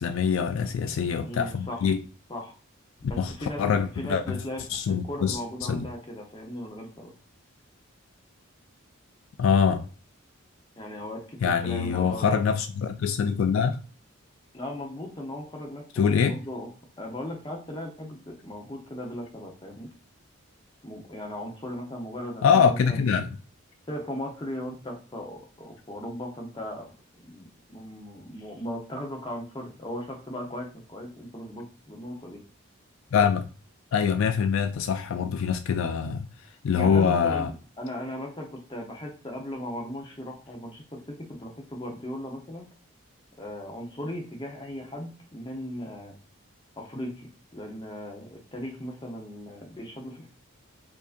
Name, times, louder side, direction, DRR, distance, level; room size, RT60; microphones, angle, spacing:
voice 1, 0.0-2.0 3.2-4.4 4.7-5.9 9.4-9.8 11.4-13.8 15.9-16.3 22.4-23.3 33.1-33.5 33.9-36.3 36.6-37.5, left 6 dB, 70° left, 0.3 m, -24 dB
voice 2, 1.2-1.9 2.3-2.5 3.0-3.6 4.0-4.6 4.9-7.1 10.8-12.4 14.5-16.7 17.0-19.9 20.8-23.0 23.9-26.9 27.2-32.4 36.7-42.7 43.4-46.1 46.8-50.3, left 1 dB, 20° left, 0.9 m, -37 dB
4.6 x 2.7 x 2.5 m
head